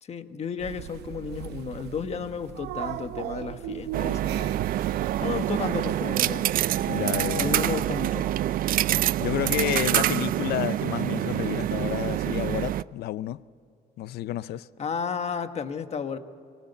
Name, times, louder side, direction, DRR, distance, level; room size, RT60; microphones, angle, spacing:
voice 1, 0.0-4.6 5.2-6.6 7.4-8.4 14.8-16.2, left 6 dB, 40° left, 1.3 m, -33 dB
sound 1, 0.6-7.9, right 13 dB, 80° right, 0.8 m, -39 dB
sound 2, 3.9-12.8, right 13 dB, 55° right, 0.5 m, -26 dB
voice 2, 6.8-7.6 9.2-13.4 14.0-14.7, left 14 dB, 70° left, 0.6 m, -30 dB
24.0 x 19.0 x 8.2 m
cardioid pair, 110°, 17 cm